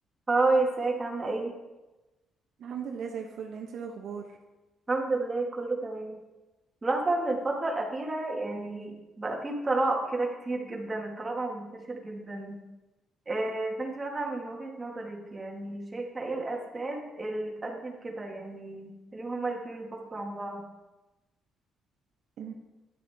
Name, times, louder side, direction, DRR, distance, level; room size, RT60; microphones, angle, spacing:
voice 1, 0.3-1.6 4.9-6.2 6.8-12.6 13.3-20.6, right 2 dB, 25° right, 0 dB, 1.8 m, -31 dB
voice 2, 2.6-4.2 22.4-22.5, right 7 dB, 70° right, 2 dB, 1.0 m, -37 dB
10.0 x 8.6 x 3.6 m, 1.1 s
cardioid pair, 95°, 0 cm